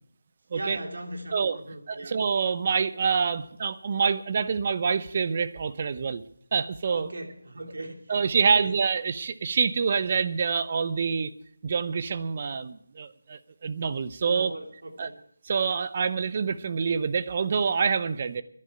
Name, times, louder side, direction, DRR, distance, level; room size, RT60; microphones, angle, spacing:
voice 1, 0.5-2.1 6.9-8.2 8.4-8.8 14.2-15.2, right 1 dB, 65° right, 4 dB, 2.6 m, -38 dB
voice 2, 1.9-6.2 6.5-7.1 8.1-11.3 11.6-14.5 15.0-15.1 15.5-18.4, right 5 dB, 40° right, 13 dB, 0.8 m, -26 dB
11.0 x 11.0 x 8.7 m, 0.67 s
figure-of-eight pair, 160°, 0 cm